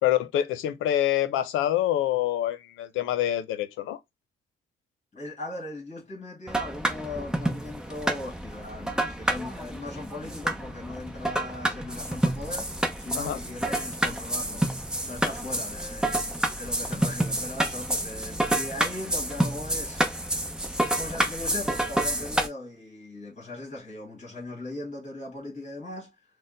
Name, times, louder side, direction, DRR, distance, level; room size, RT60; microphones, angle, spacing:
voice 1, 0.0-4.0 13.1-13.4, left 12 dB, 85° left, 0.6 m, -26 dB
voice 2, 5.1-12.7 13.0-14.7 15.0-16.2 16.6-20.4 20.9-26.2, left 2 dB, 40° left, 1.8 m, -39 dB
sound 1, 6.5-22.5, right 1 dB, 5° right, 0.8 m, -29 dB
4.1 x 2.2 x 3.7 m
cardioid pair, 90°, 20 cm